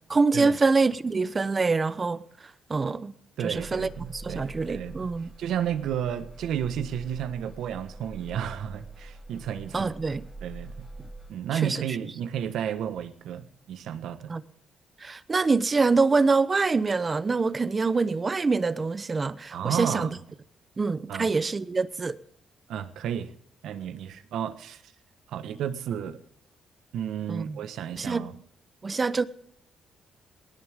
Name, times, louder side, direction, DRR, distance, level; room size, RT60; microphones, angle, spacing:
voice 1, 0.1-2.2 2.7-3.1 3.4-5.3 9.7-10.3 11.5-11.8 14.3-14.4 15.0-20.1 20.8-22.2 27.3-27.6 27.9-28.3 28.8-29.2, right 4 dB, 30° right, 0.9 m, -25 dB
voice 2, 3.4-5.1 5.4-9.9 10.4-10.9 11.3-14.3 19.5-20.1 21.1-21.3 22.7-23.3 23.6-24.8 25.3-26.2 26.9-28.3, right 9 dB, 80° right, 1.4 m, -32 dB
sound 1, 3.5-11.3, right 2 dB, 10° left, 3.0 m, -44 dB
19.5 x 17.5 x 3.7 m
cardioid pair, 90°, 0 cm